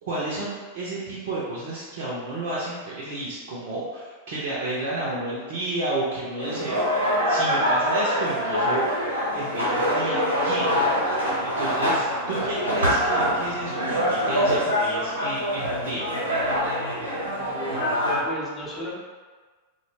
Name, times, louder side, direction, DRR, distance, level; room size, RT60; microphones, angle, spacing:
voice 1, 0.0-8.9 9.3-10.7 11.4-16.1, right 2 dB, 55° right, -6 dB, 0.5 m, -31 dB
sound 1, 6.4-18.2, equal, 85° right, 0.8 m, -24 dB
voice 2, 17.4-18.0 18.2-19.0, equal, 20° left, -5 dB, 0.6 m, -34 dB
2.1 x 2.1 x 3.1 m, 1.4 s
figure-of-eight pair, 90°, 0 cm